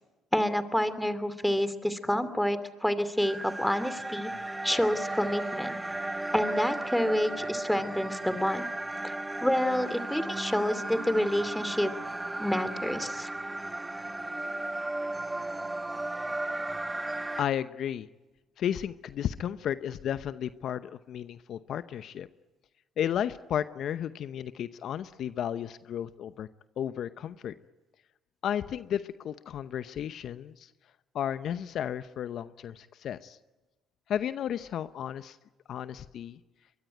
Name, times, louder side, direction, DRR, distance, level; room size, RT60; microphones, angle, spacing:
voice 1, 0.3-4.3 4.6-5.7 6.3-8.6 9.0-9.1 9.4-11.9 12.4-13.3, equal, 5° left, 12 dB, 2.7 m, -28 dB
sound 1, 3.2-17.4, right 2 dB, 15° right, 1.4 m, -35 dB
voice 2, 17.4-18.1 18.6-22.3 23.0-26.5 26.8-27.5 28.4-30.7 31.1-33.4 34.1-35.4 35.7-36.4, left 9 dB, 60° left, 13 dB, 0.8 m, -33 dB
23.0 x 22.5 x 9.3 m, 1.1 s
supercardioid pair, 65°, 0 cm